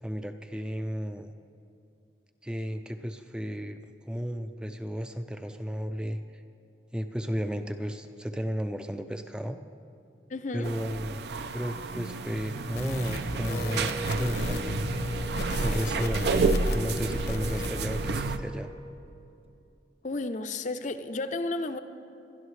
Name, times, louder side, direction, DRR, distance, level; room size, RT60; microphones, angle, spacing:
voice 1, 0.0-1.3 2.4-3.8 4.0-6.2 6.9-9.6 10.5-11.2 11.5-15.3 15.6-16.5 16.7-18.7, equal, 5° right, 7 dB, 0.4 m, -34 dB
voice 2, 10.3-10.7 20.0-21.8, left 2 dB, 45° left, 9 dB, 0.6 m, -32 dB
sound 1, 10.6-18.4, right 3 dB, 70° right, 0.5 m, -30 dB
sound 2, 12.7-17.7, left 2 dB, 65° left, 0.9 m, -36 dB
Wind instrument woodwind instrument, 13.4-19.0, equal, 35° right, 0.9 m, -42 dB
21.5 x 12.0 x 3.2 m, 2.6 s
head